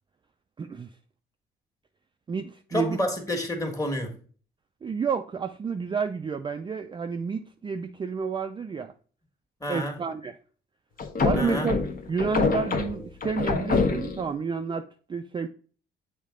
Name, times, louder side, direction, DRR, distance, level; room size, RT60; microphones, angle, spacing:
voice 1, 0.6-0.9 2.3-3.0 4.8-8.9 9.7-10.3 11.2-11.8 12.1-15.5, right 5 dB, 25° right, 0.4 m, -30 dB
voice 2, 2.7-4.1 9.6-10.0 11.3-11.7, left 1 dB, 15° left, 1.6 m, -29 dB
sound 1, 11.0-14.3, left 4 dB, 45° left, 0.9 m, -26 dB
7.3 x 3.7 x 3.7 m
cardioid pair, 90°, 20 cm